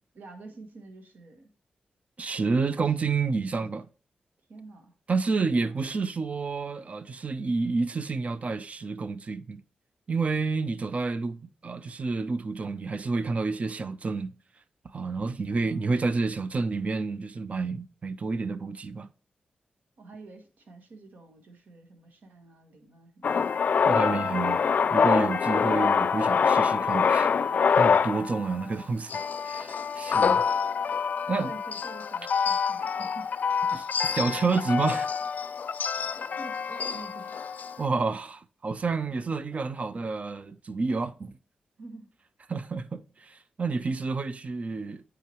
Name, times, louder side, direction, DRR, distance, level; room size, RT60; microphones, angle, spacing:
voice 1, 0.1-1.5 2.8-3.1 3.4-3.7 4.5-4.9 5.3-5.8 15.5-16.1 20.0-23.4 31.2-33.3 36.1-37.5 41.8-42.1, right 3 dB, 75° right, 1.6 m, -48 dB
voice 2, 2.2-3.8 5.1-9.6 10.1-11.4 11.6-14.3 14.9-19.1 23.8-24.6 24.9-27.3 27.7-29.2 29.4-30.4 31.3-31.5 33.7-35.1 37.8-41.3 42.5-45.0, right 4 dB, 50° right, 0.6 m, -29 dB
Male speech man speaking, 23.2-28.7 29.1-37.9, left 6 dB, 65° left, 0.4 m, -26 dB
9.1 x 5.0 x 3.1 m
cardioid pair, 65°, 3 cm